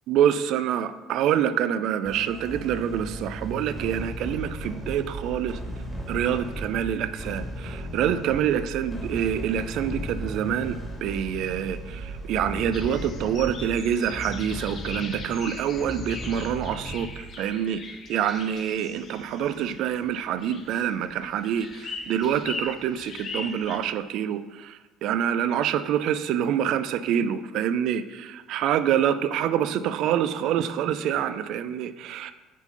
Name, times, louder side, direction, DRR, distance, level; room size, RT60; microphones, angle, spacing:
voice 1, 0.1-5.6 6.1-17.8 18.1-32.3, right 9 dB, 70° right, 12 dB, 0.3 m, -26 dB
sound 1, 2.1-17.5, right 1 dB, ahead, 1.4 m, -36 dB
sound 2, 12.7-23.8, left 4 dB, 45° left, 0.6 m, -40 dB
4.5 x 4.3 x 5.4 m, 1.2 s
supercardioid pair, 90°, 0 cm